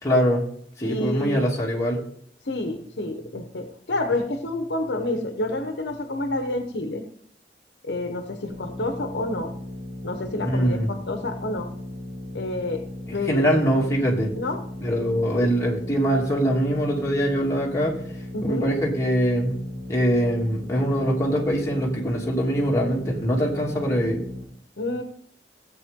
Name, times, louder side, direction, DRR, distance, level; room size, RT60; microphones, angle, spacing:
voice 1, 0.0-0.4 0.8-2.0 10.4-10.9 13.1-14.3 14.8-17.9 18.4-19.6 19.9-24.2, equal, 20° left, -3 dB, 2.8 m, -23 dB
voice 2, 0.8-1.5 2.4-7.0 7.8-9.5 10.0-11.7 12.3-12.8 13.1-13.6 14.4-14.6 18.3-18.7 24.8-25.0, left 2 dB, 70° left, 6 dB, 1.0 m, -29 dB
sound 1, 8.5-24.4, left 1 dB, 75° right, 4.2 m, -37 dB
16.0 x 8.1 x 3.7 m, 0.63 s
head